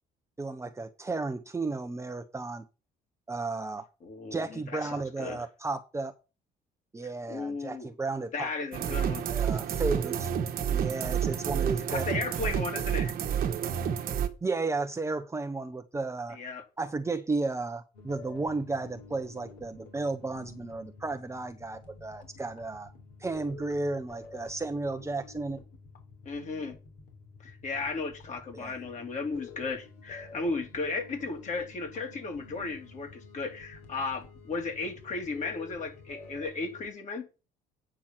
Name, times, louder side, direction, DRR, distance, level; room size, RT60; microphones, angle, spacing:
voice 1, 0.4-2.7 3.3-3.9 4.3-6.1 6.9-8.5 9.3-10.3 10.7-12.1 12.4-12.5 14.4-16.4 16.8-22.9 23.2-25.6 28.5-28.8, right 3 dB, 15° right, 0.8 m, -33 dB
voice 2, 4.0-5.4 7.3-7.9 8.3-9.2 11.9-13.1 16.3-16.6 26.2-26.8 27.4-37.2, left 3 dB, 45° left, 3.1 m, -35 dB
sound 1, 8.7-14.3, right 8 dB, 60° right, 1.3 m, -29 dB
sound 2, 17.9-36.9, left 4 dB, 70° left, 3.4 m, -49 dB
8.9 x 6.1 x 5.9 m
cardioid pair, 110°, 17 cm